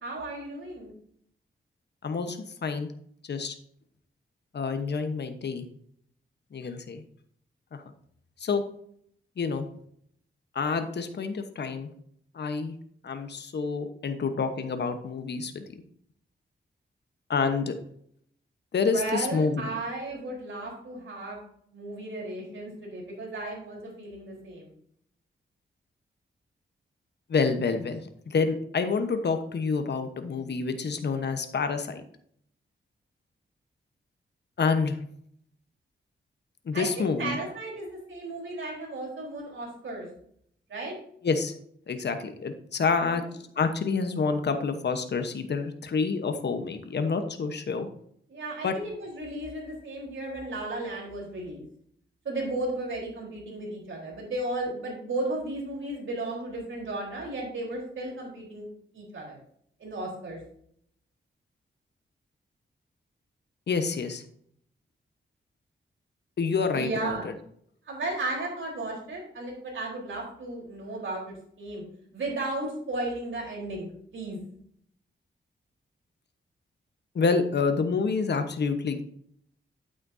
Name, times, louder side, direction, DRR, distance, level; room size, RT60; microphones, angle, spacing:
voice 1, 0.0-0.9 18.9-21.4 21.7-24.7 36.7-40.1 40.7-40.9 43.0-43.3 48.3-51.6 52.2-58.7 58.9-59.4 59.8-60.4 66.7-67.3 67.9-71.8 72.1-74.4, right 2 dB, 75° right, -2 dB, 3.8 m, -34 dB
voice 2, 2.0-2.9 3.3-3.5 4.5-5.6 6.5-7.0 7.7-7.8 8.4-8.6 9.4-9.7 10.5-11.9 12.3-12.7 13.0-15.6 17.3-17.7 18.7-19.7 27.3-32.0 34.6-35.0 36.7-37.4 41.2-41.5 41.9-43.2 43.6-47.9 48.6-48.7 63.7-64.2 66.4-67.3 77.1-79.0, left 5 dB, 60° left, 7 dB, 1.0 m, -28 dB
8.8 x 8.5 x 2.7 m, 0.66 s
wide cardioid pair, 90°, 20 cm